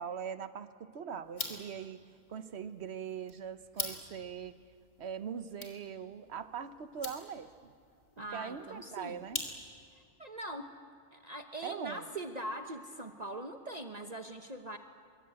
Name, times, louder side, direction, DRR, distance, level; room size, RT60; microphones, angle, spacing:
voice 1, 0.0-2.0 2.3-4.5 5.0-7.7 8.3-9.4 11.6-12.1, right 7 dB, 65° right, 11 dB, 1.3 m, -41 dB
sound 1, 1.2-10.0, left 2 dB, 90° left, 3.7 m, -45 dB
voice 2, 8.2-9.2 10.2-10.7 11.1-14.8, right 1 dB, 35° right, 5 dB, 1.2 m, -42 dB
24.0 x 24.0 x 8.7 m, 2.4 s
omnidirectional pair, 1.2 m